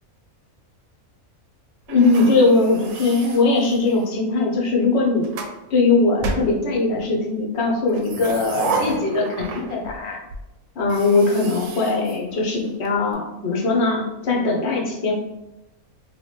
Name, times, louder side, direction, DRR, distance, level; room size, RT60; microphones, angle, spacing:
voice 1, 1.9-5.3 5.7-10.2 10.8-15.1, left 3 dB, 55° left, -2 dB, 1.0 m, -20 dB
sound 1, 1.9-4.2 4.9-5.6 6.2-7.1 7.9-10.0 10.3-10.4 10.8-12.9, right 3 dB, 90° right, 1.0 m, -31 dB
3.1 x 2.9 x 3.2 m, 0.95 s
omnidirectional pair, 1.4 m